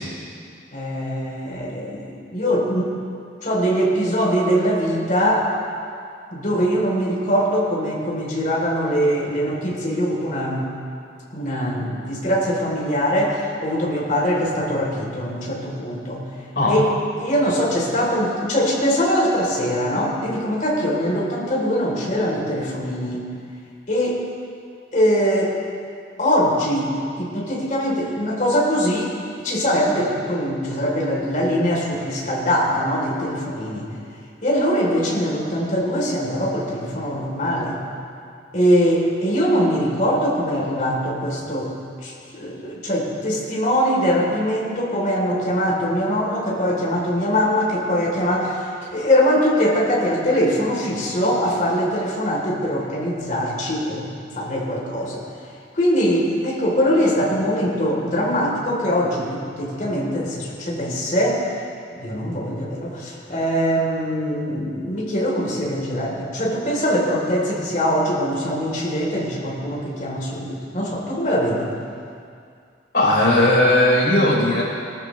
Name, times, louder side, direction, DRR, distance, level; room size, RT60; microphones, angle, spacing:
voice 1, 0.7-2.9 3.4-5.5 6.3-10.7 11.3-16.2 16.7-16.9 17.2-23.2 23.9-24.2 24.9-25.5 26.2-29.1 29.4-33.9 34.4-37.8 38.5-41.7 42.0-54.1 54.3-55.2 55.7-61.4 62.0-71.7, equal, 45° left, -3 dB, 3.1 m, -22 dB
voice 2, 72.9-74.6, left 1 dB, 65° left, -5 dB, 4.1 m, -17 dB
20.5 x 13.5 x 3.1 m, 2.4 s
head